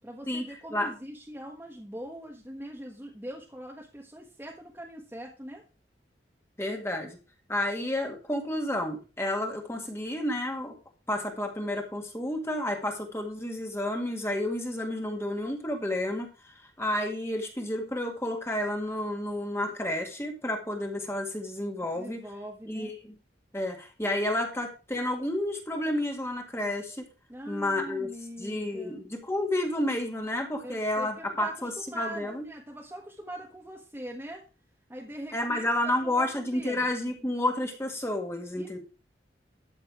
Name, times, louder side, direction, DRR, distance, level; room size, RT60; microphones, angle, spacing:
voice 1, 0.0-5.6 21.9-22.9 27.3-29.0 30.6-34.4 34.9-36.9 38.6-38.8, right 1 dB, 10° right, 0 dB, 1.4 m, -42 dB
voice 2, 6.6-7.2 7.5-10.8 11.1-22.2 22.7-23.2 23.5-27.1 27.5-28.1 28.4-32.4 35.3-38.8, left 1 dB, 15° left, 3 dB, 2.0 m, -31 dB
12.5 x 6.7 x 4.9 m, 0.33 s
head